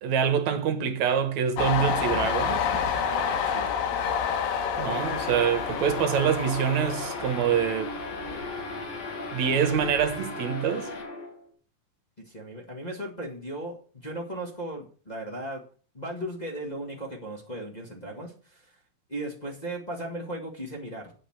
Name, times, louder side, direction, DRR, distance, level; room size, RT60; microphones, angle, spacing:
voice 1, 0.0-2.7 4.8-7.9 9.3-10.9, right 8 dB, 65° right, 2.1 m, -25 dB
Train, 1.6-9.0 9.4-10.2, left 6 dB, 80° left, 2.8 m, -29 dB
voice 2, 3.5-3.8 12.2-15.6 15.9-18.7 19.1-21.1, right 1 dB, 25° left, 1.0 m, -36 dB
sound 1, 4.9-11.5, left 3 dB, 50° left, 2.9 m, -36 dB
8.7 x 5.9 x 7.3 m
omnidirectional pair, 4.0 m